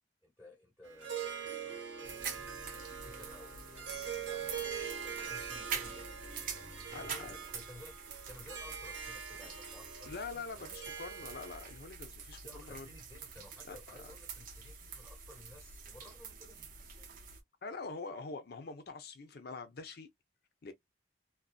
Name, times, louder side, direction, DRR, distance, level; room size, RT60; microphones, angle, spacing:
voice 1, 0.2-3.7 4.2-6.3 6.8-8.0 8.2-10.1 10.5-10.6 12.4-17.2, left 1 dB, ahead, 1.0 m, -56 dB
Harp, 0.8-11.8, right 7 dB, 85° right, 1.0 m, -43 dB
sound 1, 2.0-7.5, left 2 dB, 80° left, 0.8 m, -58 dB
sound 2, 2.0-17.4, right 6 dB, 50° right, 0.6 m, -46 dB
voice 2, 6.9-7.3 10.1-12.9 13.7-14.1 17.6-20.1 20.6-20.7, left 4 dB, 55° left, 0.6 m, -44 dB
2.6 x 2.3 x 2.3 m
head